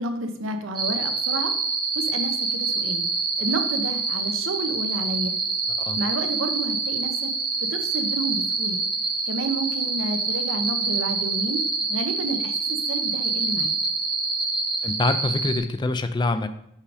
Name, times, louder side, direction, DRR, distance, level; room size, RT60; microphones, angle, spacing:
voice 1, 0.0-1.5 1.9-3.1 3.4-5.4 6.0-7.3 7.6-8.8 9.3-11.6 11.9-13.7, right 2 dB, 80° right, 7 dB, 0.8 m, -30 dB
sound 1, 0.8-15.6, right 4 dB, 20° right, 0.8 m, -26 dB
voice 2, 14.8-16.5, left 2 dB, 20° left, 10 dB, 0.3 m, -25 dB
5.6 x 5.0 x 4.9 m, 0.76 s
head